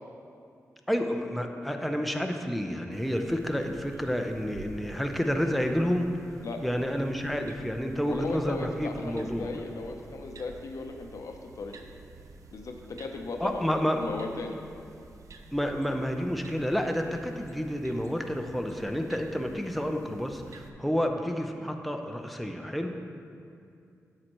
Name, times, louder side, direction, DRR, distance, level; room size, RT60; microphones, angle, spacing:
voice 1, 0.9-6.1 6.6-9.5 13.4-14.1 15.5-23.0, equal, ahead, 4 dB, 0.6 m, -30 dB
sound 1, 2.9-20.7, right 3 dB, 75° right, 0.5 m, -50 dB
voice 2, 8.1-11.8 12.5-13.6 13.9-14.6, left 3 dB, 70° left, 4 dB, 0.7 m, -36 dB
9.6 x 6.5 x 3.0 m, 2.5 s
cardioid pair, 60°, 6 cm